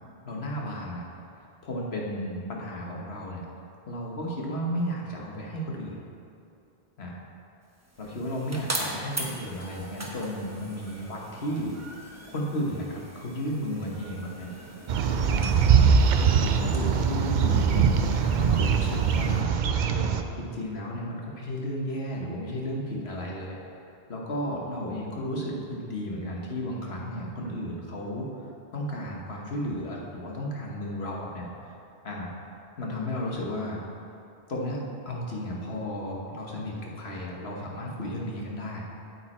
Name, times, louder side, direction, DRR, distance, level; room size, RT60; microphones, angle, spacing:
voice 1, 0.2-1.0 1.3-3.4 3.9-6.0 7.0-7.2 8.0-11.9 12.3-14.5 15.3-15.6 16.2-23.6 24.1-31.7 32.0-32.3 32.8-33.8 34.5-38.8, equal, 80° left, -2 dB, 1.5 m, -34 dB
sound 1, 7.7-19.4, right 1 dB, 15° right, 1.0 m, -41 dB
sound 2, 14.9-20.2, right 6 dB, 55° right, 0.6 m, -22 dB
8.7 x 7.7 x 4.4 m, 2.7 s
omnidirectional pair, 1.1 m